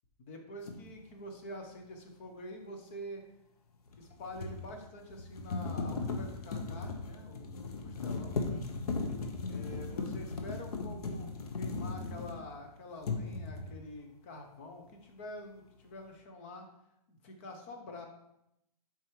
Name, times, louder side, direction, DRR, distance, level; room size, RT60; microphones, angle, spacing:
voice 1, 0.2-3.2 4.0-8.4 9.5-16.7 17.1-18.1, left 1 dB, 20° left, 3 dB, 0.6 m, -47 dB
sound 1, 0.7-0.8 3.9-12.6 13.0-13.8, left 3 dB, 65° left, 1.1 m, -37 dB
7.7 x 4.7 x 3.1 m, 0.82 s
hypercardioid pair, 175°, 21 cm